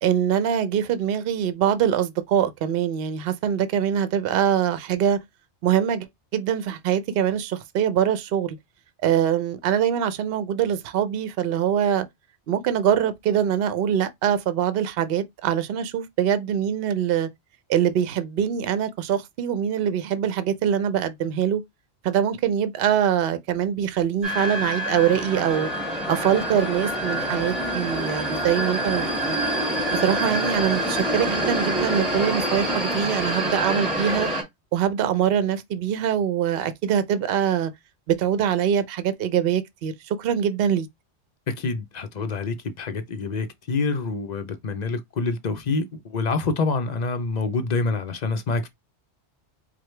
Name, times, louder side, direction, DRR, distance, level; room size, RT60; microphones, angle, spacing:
voice 1, 0.0-5.2 5.6-6.1 6.3-8.6 9.0-12.1 12.5-17.3 17.7-21.6 22.0-25.7 26.1-29.4 29.9-34.3 34.7-37.7 38.1-40.9, right 9 dB, 60° right, 0.7 m, -23 dB
sound 1, 24.2-34.4, right 1 dB, ahead, 1.6 m, -26 dB
voice 2, 41.5-48.7, left 3 dB, 45° left, 0.6 m, -27 dB
4.8 x 2.2 x 3.1 m
omnidirectional pair, 1.2 m